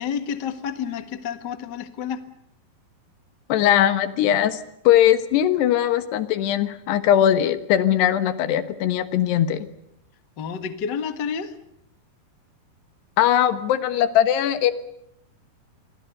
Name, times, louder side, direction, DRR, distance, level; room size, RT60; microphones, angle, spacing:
voice 1, 0.0-2.2 10.4-11.5, left 7 dB, 55° left, 8 dB, 1.2 m, -29 dB
voice 2, 3.5-9.7 13.2-14.7, left 11 dB, 85° left, 11 dB, 3.5 m, -20 dB
28.0 x 23.5 x 6.8 m, 0.80 s
omnidirectional pair, 4.7 m